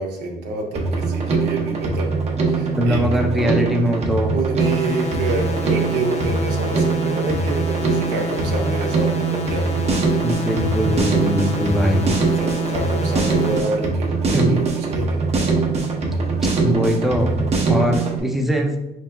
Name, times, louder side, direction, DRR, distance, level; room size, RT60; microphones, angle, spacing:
voice 1, 0.0-2.1 2.5-3.0 3.3-3.7 4.3-10.0 12.4-15.8, right 3 dB, 85° right, 1 dB, 0.8 m, -28 dB
Drum kit, 0.7-18.2, right 4 dB, 40° right, 0.8 m, -22 dB
voice 2, 2.7-4.3 10.2-12.1 14.3-14.5 16.6-17.4 17.7-18.8, equal, ahead, 2 dB, 0.5 m, -21 dB
sound 1, 4.6-13.6, left 4 dB, 40° left, 0.6 m, -30 dB
4.6 x 3.0 x 2.2 m, 0.93 s
cardioid pair, 110°, 17 cm